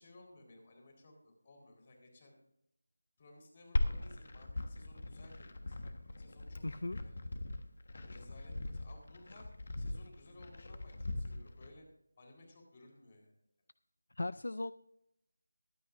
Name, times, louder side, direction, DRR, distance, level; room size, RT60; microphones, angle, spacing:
voice 1, 0.0-2.4 3.2-7.3 7.9-11.9 12.2-13.3, left 2 dB, 35° left, 1 dB, 4.1 m, -59 dB
Glass, 3.8-11.7, left 2 dB, 55° left, 1.4 m, -39 dB
voice 2, 6.6-7.0 14.2-14.7, left 2 dB, 70° left, 16 dB, 0.3 m, -37 dB
22.5 x 8.9 x 2.6 m, 0.80 s
figure-of-eight pair, 165°, 0 cm